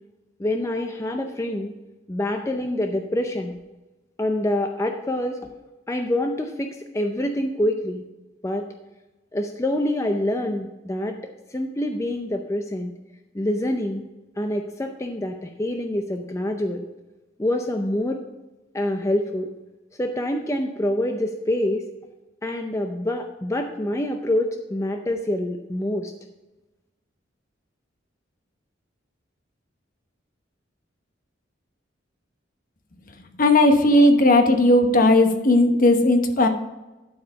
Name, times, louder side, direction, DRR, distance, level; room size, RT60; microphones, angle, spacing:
voice 1, 0.4-1.7 2.1-3.6 4.2-5.4 5.9-8.0 8.4-8.7 9.3-11.2 11.5-12.9 13.3-14.0 14.4-16.9 17.4-18.2 18.7-19.5 20.0-21.9 22.4-26.1, left 1 dB, 15° left, 4 dB, 0.5 m, -26 dB
voice 2, 33.4-36.5, left 1 dB, 45° left, 6 dB, 1.0 m, -16 dB
12.0 x 4.8 x 5.3 m, 1.1 s
head